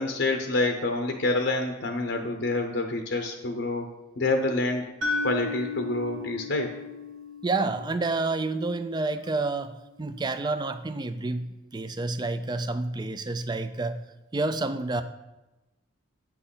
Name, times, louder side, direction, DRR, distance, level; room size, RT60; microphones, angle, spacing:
voice 1, 0.0-3.9 4.2-4.9 5.2-6.7, left 2 dB, 60° left, 4 dB, 0.7 m, -27 dB
sound 1, 5.0-9.1, left 3 dB, 80° right, 1.4 m, -35 dB
voice 2, 7.4-14.0 14.3-15.0, right 3 dB, 20° right, 11 dB, 0.3 m, -29 dB
8.6 x 6.1 x 3.9 m, 1.0 s
head